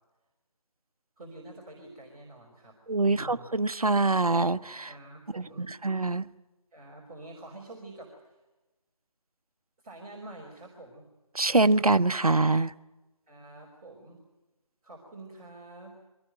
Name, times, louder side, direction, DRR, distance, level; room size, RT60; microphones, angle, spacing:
voice 1, 1.2-2.8 3.1-3.5 4.9-5.7 6.7-8.4 9.8-11.1 13.3-14.2 14.8-16.0, right 2 dB, 15° right, -5 dB, 3.5 m, -47 dB
voice 2, 2.9-4.9 5.4-6.3 11.3-12.7, right 3 dB, 80° right, 14 dB, 0.8 m, -24 dB
24.0 x 17.5 x 9.2 m, 1.1 s
figure-of-eight pair, 155°, 19 cm